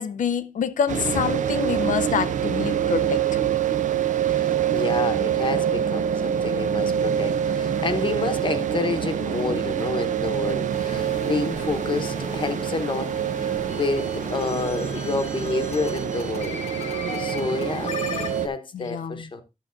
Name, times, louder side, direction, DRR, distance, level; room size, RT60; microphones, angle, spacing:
voice 1, 0.0-3.2 18.7-19.2, left 7 dB, 90° left, 0.6 m, -26 dB
sound 1, 0.9-18.5, right 9 dB, 80° right, 0.6 m, -26 dB
voice 2, 4.3-17.9 18.4-19.4, left 4 dB, 40° left, 0.9 m, -29 dB
sound 2, 8.9-18.4, left 5 dB, 55° left, 1.1 m, -37 dB
11.5 x 7.1 x 2.5 m
wide cardioid pair, 175°, 13 cm